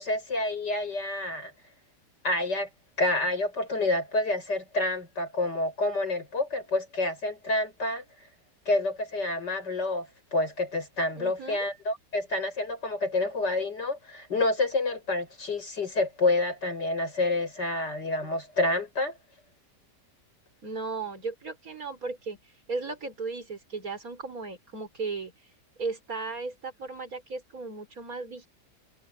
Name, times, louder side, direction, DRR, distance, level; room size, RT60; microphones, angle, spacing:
voice 1, 0.0-1.5 2.2-2.7 3.0-8.0 8.7-19.1, left 2 dB, 80° left, 7.5 m, -28 dB
voice 2, 11.1-11.7 20.6-22.4 22.7-25.3 25.8-28.5, right 4 dB, 55° right, 4.8 m, -36 dB
omnidirectional pair, 1.8 m